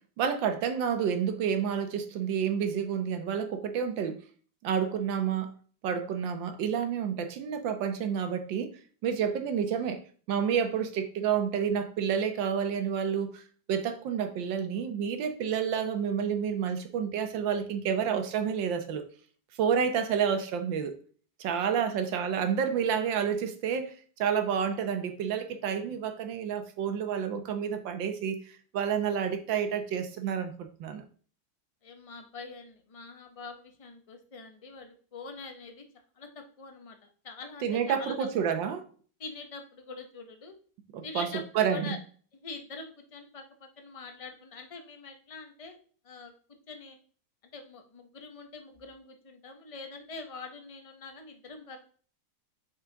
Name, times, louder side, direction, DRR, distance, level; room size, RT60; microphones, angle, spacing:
voice 1, 0.2-4.2 4.6-5.5 5.8-8.7 9.0-10.0 10.3-13.4 13.7-19.1 19.6-20.9 21.4-28.4 28.7-31.0 37.6-38.8 40.9-41.3 41.5-41.9, right 7 dB, 85° right, 1.6 m, -29 dB
voice 2, 21.5-22.0 31.8-35.8 36.2-38.3 39.2-40.5 41.0-42.0 42.3-43.4 43.8-45.8 46.0-46.3 46.7-47.0 47.4-51.8, left 4 dB, 45° left, 0.4 m, -44 dB
5.7 x 5.0 x 3.8 m
omnidirectional pair, 2.0 m